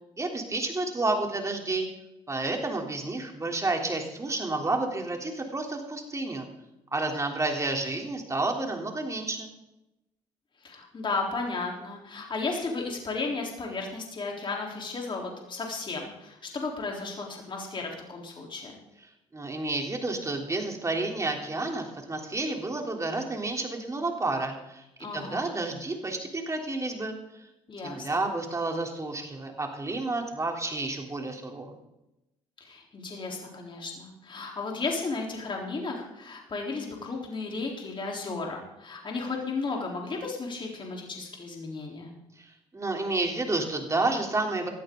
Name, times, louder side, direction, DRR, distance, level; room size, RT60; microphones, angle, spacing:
voice 1, 0.2-1.9 2.3-6.5 6.9-9.5 19.3-24.8 25.1-27.1 27.8-31.8 42.4-44.7, right 2 dB, 25° right, 2 dB, 3.6 m, -30 dB
voice 2, 10.6-18.7 25.0-25.6 27.7-28.2 32.6-42.1, left 3 dB, 40° left, 0 dB, 3.9 m, -34 dB
18.5 x 13.5 x 3.9 m, 0.92 s
supercardioid pair, 60°, 13 cm